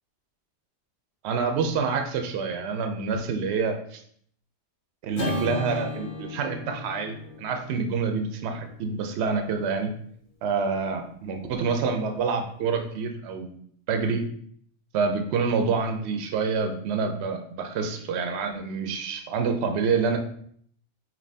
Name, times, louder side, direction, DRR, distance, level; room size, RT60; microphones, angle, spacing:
voice 1, 1.2-4.0 5.0-9.9 10.4-13.6 13.9-14.3 14.9-20.2, right 5 dB, 70° right, 5 dB, 0.8 m, -27 dB
Acoustic guitar / Strum, 5.1-9.6, left 2 dB, 70° left, 1.5 m, -35 dB
5.2 x 2.8 x 2.7 m, 0.63 s
omnidirectional pair, 1.2 m